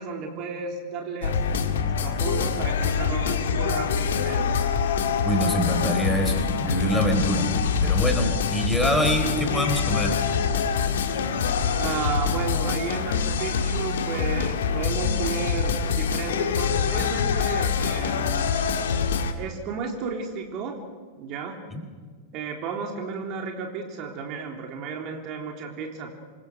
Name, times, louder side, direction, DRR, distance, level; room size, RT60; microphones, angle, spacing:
voice 1, 0.0-1.4 1.8-4.6 11.7-18.5 19.4-20.8 21.2-21.6 22.3-26.1, right 5 dB, 40° right, 2 dB, 3.6 m, -33 dB
sound 1, 1.2-19.3, left 6 dB, 60° left, 2.0 m, -25 dB
voice 2, 5.2-10.2 21.7-21.8, equal, ahead, 3 dB, 4.6 m, -25 dB
27.5 x 24.5 x 6.4 m, 1.5 s
figure-of-eight pair, 90°, 0 cm